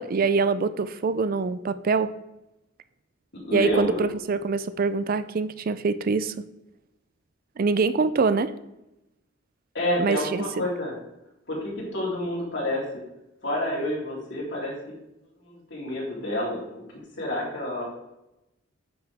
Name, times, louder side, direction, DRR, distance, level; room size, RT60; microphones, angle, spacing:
voice 1, 0.0-2.1 3.5-6.3 7.6-8.5 10.0-10.6, right 4 dB, 45° right, 13 dB, 0.4 m, -24 dB
voice 2, 3.3-4.0 9.7-10.9 11.5-12.8 13.4-14.7 15.4-16.8 17.2-17.9, left 1 dB, 60° left, -4 dB, 3.4 m, -29 dB
9.7 x 6.3 x 3.5 m, 0.92 s
head